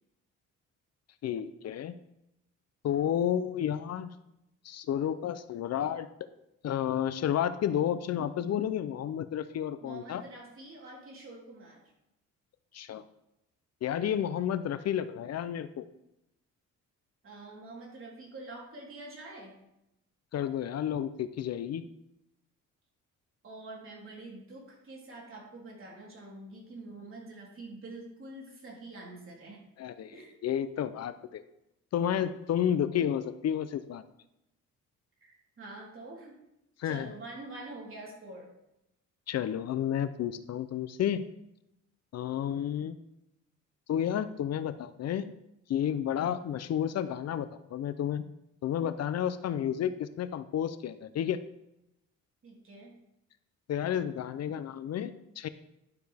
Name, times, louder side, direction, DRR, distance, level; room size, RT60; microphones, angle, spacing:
voice 1, 1.2-1.9 2.8-4.1 4.6-6.1 6.6-10.2 12.7-13.0 13.8-15.9 20.3-21.9 29.8-30.2 30.4-31.4 31.9-34.0 36.8-37.1 39.3-41.2 42.1-43.0 43.9-45.3 45.7-48.2 48.6-51.4 53.7-55.5, left 9 dB, 55° left, 13 dB, 0.6 m, -31 dB
voice 2, 9.8-11.8 17.2-19.5 23.4-29.6 30.1-30.4 35.2-36.3 36.8-38.5 52.4-52.9, right 2 dB, 45° right, -2 dB, 3.6 m, -46 dB
11.5 x 6.9 x 3.5 m, 0.84 s
cardioid pair, 90°, 30 cm